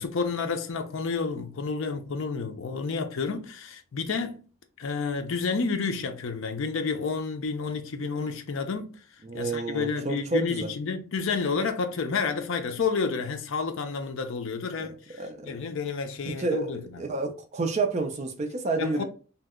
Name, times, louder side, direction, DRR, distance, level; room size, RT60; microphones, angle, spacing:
voice 1, 0.0-4.4 4.8-9.0 9.3-17.0 18.8-19.0, left 4 dB, 60° left, 0.5 m, -30 dB
voice 2, 9.2-10.7 14.8-14.9 15.2-15.6 16.4-16.7 17.0-19.0, right 3 dB, 30° right, 0.4 m, -29 dB
2.8 x 2.1 x 3.5 m
head